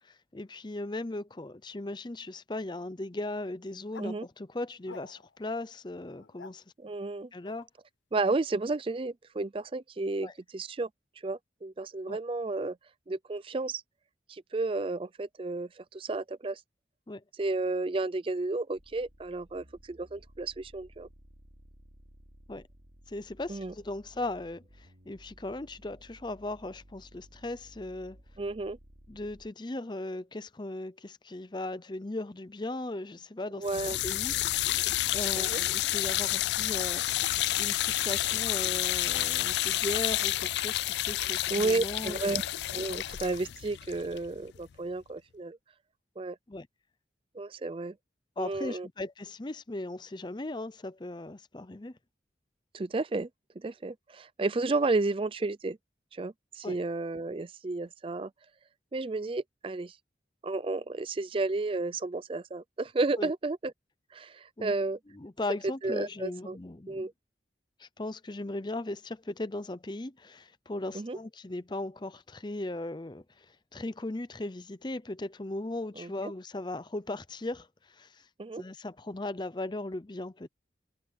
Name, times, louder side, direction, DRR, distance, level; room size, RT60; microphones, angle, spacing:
voice 1, 0.0-6.6 7.3-7.7 10.2-10.3 12.1-12.2 17.1-17.2 22.5-22.7 23.1-28.2 29.1-34.8 35.1-37.0 37.6-42.2 46.5-46.7 48.4-52.0 56.6-56.8 63.2-63.3 64.6-64.7 65.1-67.1 67.8-73.5 73.7-78.3 78.6-80.5, left 2 dB, 25° left, 0.6 m, -38 dB
sound 1, 3.9-4.1 4.8-5.4 6.1-6.5 7.5-7.6, left 4 dB, 90° left, 0.8 m, -49 dB
voice 2, 6.8-7.3 8.1-10.9 11.2-12.8 13.1-13.8 14.3-16.6 17.4-21.1 23.5-23.7 28.4-28.8 33.6-34.0 35.4-35.6 41.5-42.4 42.7-45.6 46.2-46.4 47.3-47.9 48.4-48.9 52.7-53.3 53.6-55.8 56.1-58.3 58.9-60.0 60.4-63.7 64.1-65.0 65.8-66.6 66.9-67.1 70.9-71.2 76.0-76.1 78.4-78.6, right 3 dB, 30° right, 0.4 m, -32 dB
sound 2, 18.7-29.5, equal, 70° right, 5.5 m, -56 dB
sound 3, 33.6-44.7, left 15 dB, 70° left, 0.3 m, -30 dB
head